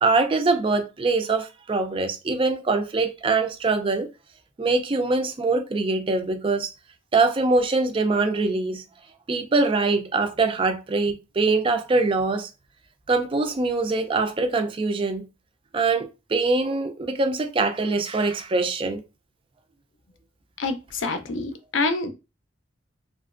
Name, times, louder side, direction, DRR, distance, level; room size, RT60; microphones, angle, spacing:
voice 1, 0.0-4.1 4.6-6.7 7.1-8.8 9.3-12.5 13.1-15.3 15.7-19.0, right 3 dB, 30° right, 0.4 m, -23 dB
voice 2, 20.6-22.1, left 3 dB, 75° left, 0.5 m, -26 dB
2.9 x 2.4 x 2.4 m
head